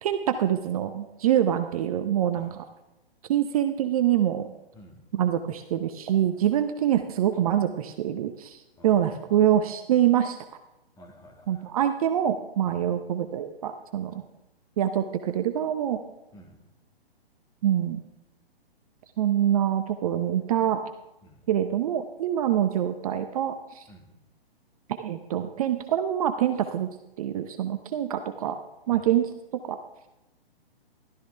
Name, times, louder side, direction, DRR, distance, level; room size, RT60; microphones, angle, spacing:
voice 1, 0.0-2.5 3.3-4.5 5.1-10.4 11.5-14.2 14.8-16.0 17.6-18.0 19.2-20.8 21.5-23.9 25.0-26.9 27.2-28.6 28.9-29.3 29.6-29.8, right 10 dB, 35° right, 8 dB, 0.7 m, -25 dB
voice 2, 4.7-5.1 8.8-9.4 11.0-11.7 12.7-12.9 14.1-14.2 16.3-16.7 21.2-21.4 23.9-24.1 28.9-29.1, left 1 dB, 10° left, 2 dB, 1.7 m, -50 dB
15.0 x 12.5 x 3.3 m, 0.96 s
hypercardioid pair, 135°, 31 cm